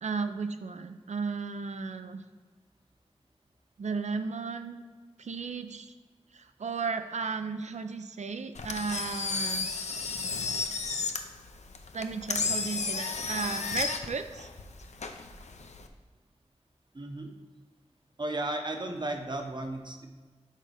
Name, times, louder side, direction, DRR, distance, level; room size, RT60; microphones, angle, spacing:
voice 1, 0.0-2.2 3.8-4.8 5.2-5.9 6.3-9.7 11.9-14.5, right 4 dB, 90° right, 8 dB, 0.4 m, -34 dB
Engine, 8.5-15.9, left 4 dB, 90° left, 0.5 m, -33 dB
voice 2, 16.9-17.3 18.2-20.1, right 2 dB, 40° right, 4 dB, 0.8 m, -34 dB
6.5 x 3.9 x 4.8 m, 1.5 s
wide cardioid pair, 65°, 12 cm